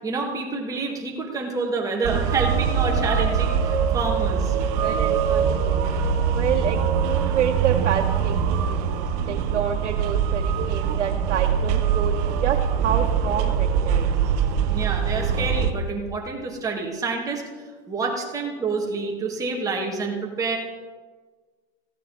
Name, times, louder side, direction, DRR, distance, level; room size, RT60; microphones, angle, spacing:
voice 1, 0.0-4.5 14.7-17.4 17.9-20.6, right 4 dB, 10° right, 0 dB, 1.5 m, -28 dB
sound 1, 2.0-15.7, right 7 dB, 35° right, 0.9 m, -23 dB
voice 2, 4.7-6.0 6.3-8.8 9.3-14.1, right 7 dB, 85° right, 1 dB, 1.2 m, -28 dB
15.5 x 9.1 x 3.9 m, 1.4 s
hypercardioid pair, 155°, 34 cm